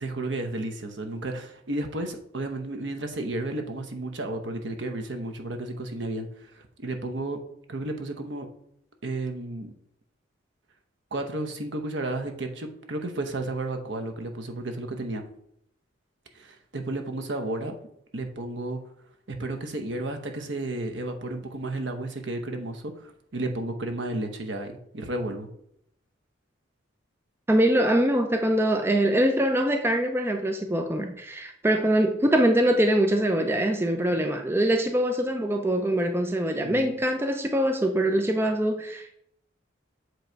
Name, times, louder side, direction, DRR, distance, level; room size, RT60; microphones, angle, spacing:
voice 1, 0.0-6.5 6.8-7.4 7.7-8.5 9.0-9.7 11.1-15.2 16.3-17.7 18.1-18.8 19.3-25.5 36.6-36.9, right 2 dB, 65° right, 5 dB, 0.8 m, -32 dB
voice 2, 27.5-39.2, right 1 dB, 10° right, 5 dB, 0.4 m, -23 dB
7.8 x 3.1 x 4.6 m, 0.72 s
head